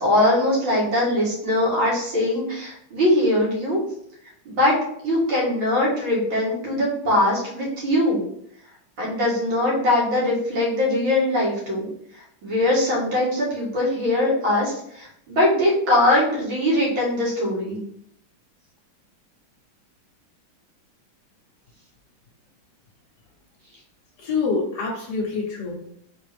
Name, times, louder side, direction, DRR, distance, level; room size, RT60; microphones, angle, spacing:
voice 1, 0.0-3.8 4.5-4.8 5.0-8.2 9.0-11.9 12.1-17.8, left 1 dB, 75° right, -5 dB, 2.5 m, -21 dB
voice 2, 24.2-25.9, left 4 dB, 60° left, 0 dB, 1.3 m, -26 dB
4.5 x 3.5 x 3.4 m, 0.70 s
omnidirectional pair, 2.2 m